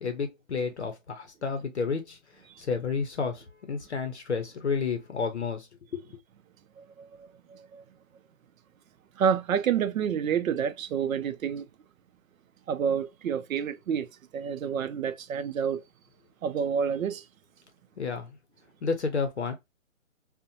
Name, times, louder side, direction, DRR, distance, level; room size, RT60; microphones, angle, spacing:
voice 1, 0.0-2.2 2.6-5.7 18.0-18.3 18.8-19.5, left 5 dB, 60° left, 0.6 m, -31 dB
voice 2, 6.8-7.8 9.2-11.7 12.7-14.1 14.3-15.8 16.4-17.3, right 7 dB, 90° right, 0.5 m, -29 dB
2.7 x 2.1 x 2.5 m
hypercardioid pair, 175°, 40 cm